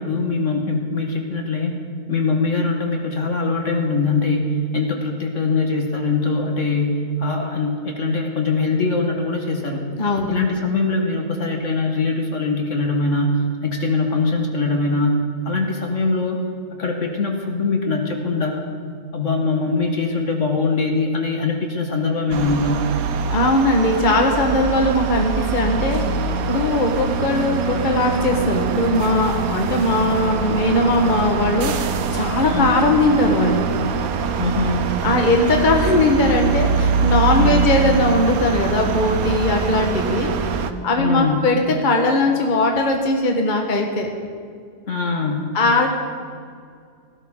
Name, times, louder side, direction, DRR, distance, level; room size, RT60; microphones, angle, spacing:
voice 1, 0.0-1.7 2.1-9.8 10.3-16.4 16.8-18.6 19.1-22.9 32.5-32.7 34.4-34.9 37.4-37.7 41.0-41.6 44.9-45.6, left 3 dB, 50° left, 2 dB, 1.7 m, -22 dB
sound 1, 22.3-40.7, right 5 dB, 65° right, 1.2 m, -23 dB
voice 2, 23.3-33.7 35.0-40.3 40.8-44.1 45.5-45.9, left 2 dB, 30° left, 2 dB, 1.4 m, -19 dB
17.5 x 16.0 x 3.8 m, 2.2 s
omnidirectional pair, 1.8 m